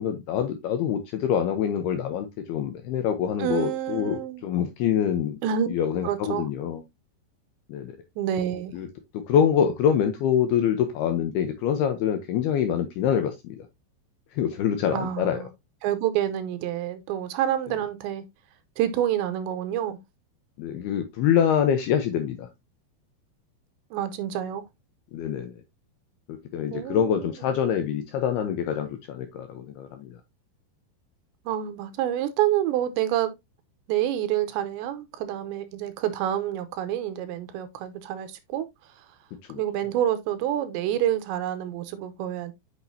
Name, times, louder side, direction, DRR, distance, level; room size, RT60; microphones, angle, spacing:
voice 1, 0.0-5.4 5.7-6.8 7.7-8.0 8.7-8.9 9.1-13.7 14.3-15.5 20.6-22.5 25.1-25.6 26.3-30.2 39.5-39.6, left 8 dB, 80° left, 2.4 m, -25 dB
voice 2, 3.4-4.4 5.4-5.7 6.0-6.5 8.2-8.8 14.9-15.5 15.8-18.3 18.8-20.0 23.9-24.7 26.7-27.3 31.5-33.3 33.9-38.7 39.0-39.1 39.6-42.5, right 11 dB, 80° right, 2.9 m, -28 dB
8.3 x 6.1 x 2.7 m
omnidirectional pair, 5.4 m